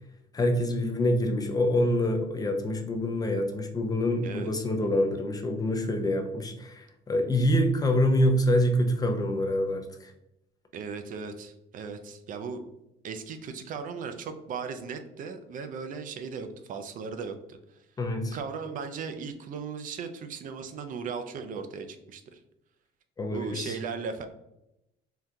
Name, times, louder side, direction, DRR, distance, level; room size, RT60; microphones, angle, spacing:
voice 1, 0.3-10.1 18.0-18.4 23.2-23.8, left 1 dB, 20° left, 4 dB, 0.5 m, -26 dB
voice 2, 10.7-12.6 13.0-17.9 18.3-22.4 23.3-24.3, right 5 dB, 55° right, 7 dB, 0.4 m, -37 dB
3.6 x 2.3 x 2.7 m, 0.85 s
cardioid pair, 110°, 17 cm